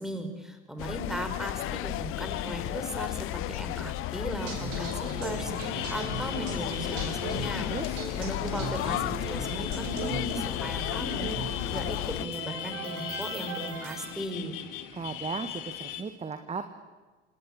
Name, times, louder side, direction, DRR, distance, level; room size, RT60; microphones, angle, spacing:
voice 1, 0.0-7.7 8.2-14.6, right 1 dB, ahead, 7 dB, 4.8 m, -37 dB
sound 1, 0.8-12.2, left 17 dB, 35° left, 0.7 m, -34 dB
sound 2, 1.5-16.0, left 11 dB, 55° left, 2.3 m, -40 dB
sound 3, 4.4-14.1, right 4 dB, 55° right, 7.3 m, -39 dB
voice 2, 7.7-8.0 14.9-16.7, right 5 dB, 20° right, 8 dB, 1.6 m, -36 dB
27.5 x 19.0 x 8.8 m, 1.3 s
figure-of-eight pair, 70°, 35 cm